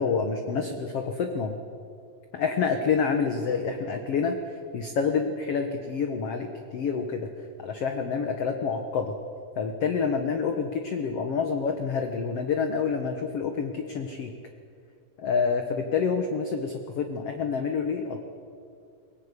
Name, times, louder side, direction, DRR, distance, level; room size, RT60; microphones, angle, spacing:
voice 1, 0.0-1.6 2.3-4.4 4.7-7.3 7.6-9.2 9.6-14.3 15.2-18.2, left 5 dB, 55° left, 5 dB, 1.8 m, -28 dB
22.0 x 18.5 x 9.9 m, 2.4 s
omnidirectional pair, 4.2 m